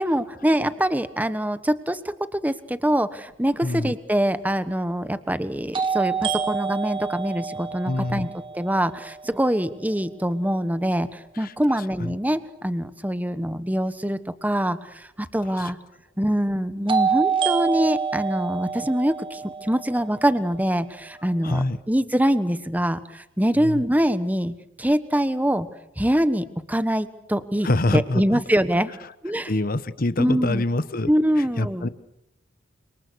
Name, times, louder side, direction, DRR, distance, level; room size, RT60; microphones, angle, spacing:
voice 1, 0.0-2.0 2.3-15.8 16.2-24.5 24.8-25.7 26.0-27.7 27.9-28.9 29.2-29.5 30.2-30.6 31.1-31.9, equal, 10° right, 12 dB, 1.2 m, -24 dB
voice 2, 3.6-3.9 7.8-8.3 11.4-11.5 12.0-12.1 15.6-15.7 21.4-21.8 23.6-23.8 27.6-28.4 29.5-31.1 31.4-31.9, left 2 dB, 45° left, 14 dB, 1.2 m, -25 dB
sound 1, 3.8-3.9 5.7-9.6 16.9-20.9, right 6 dB, 25° right, 1.7 m, -27 dB
29.5 x 26.5 x 6.4 m, 0.78 s
head